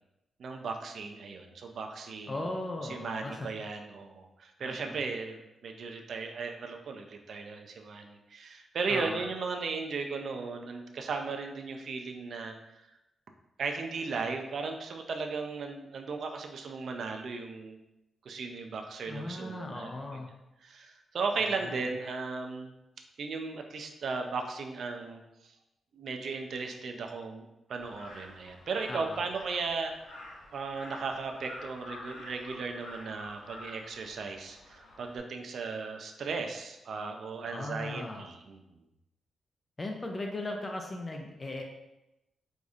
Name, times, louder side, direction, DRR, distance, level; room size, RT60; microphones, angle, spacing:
voice 1, 0.4-2.3 2.8-12.8 13.6-17.8 18.2-20.2 20.6-22.7 23.2-25.5 25.9-30.2 30.5-38.6, right 4 dB, 60° right, 4 dB, 0.4 m, -36 dB
voice 2, 2.3-3.5 4.6-5.0 8.9-9.3 19.1-20.3 21.4-21.9 28.9-29.2 37.5-38.3 39.8-41.6, left 2 dB, 25° left, 2 dB, 0.4 m, -38 dB
Crow, 27.8-35.2, left 1 dB, 85° left, 0.6 m, -48 dB
4.8 x 2.6 x 2.4 m, 0.93 s
wide cardioid pair, 140°, 0 cm